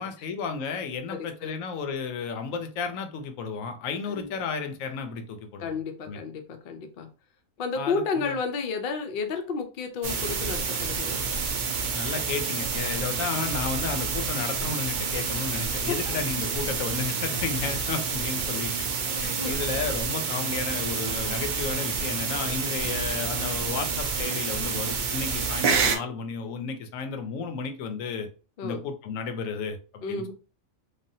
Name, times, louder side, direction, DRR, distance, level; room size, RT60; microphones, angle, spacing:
voice 1, 0.0-5.8 6.1-6.2 7.8-8.4 11.9-18.7 19.2-28.3 28.6-30.2, left 5 dB, 85° left, 1.0 m, -33 dB
voice 2, 1.1-1.5 4.1-4.3 5.6-7.1 7.6-11.3 15.9-16.2 19.1-19.5 28.6-28.8 30.0-30.3, left 5 dB, 60° left, 0.6 m, -32 dB
sound 1, 10.0-26.0, right 5 dB, 65° right, 0.5 m, -29 dB
3.3 x 2.2 x 2.6 m
omnidirectional pair, 1.3 m